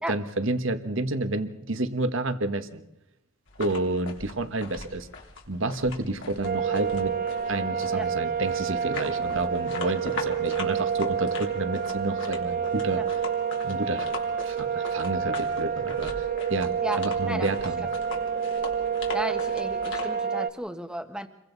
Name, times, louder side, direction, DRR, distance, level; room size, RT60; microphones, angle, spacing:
voice 1, 0.1-2.8 3.6-5.1 5.5-7.1 7.5-13.2 13.6-14.1 14.4-16.1 16.5-17.9, right 2 dB, 65° right, 9 dB, 1.4 m, -30 dB
sound 1, 3.5-20.1, left 4 dB, 60° left, 3.6 m, -41 dB
sound 2, 6.4-20.5, right 7 dB, 40° right, 0.8 m, -28 dB
voice 2, 19.1-21.3, right 1 dB, 5° right, 6 dB, 1.5 m, -33 dB
28.5 x 23.0 x 4.1 m, 0.89 s
head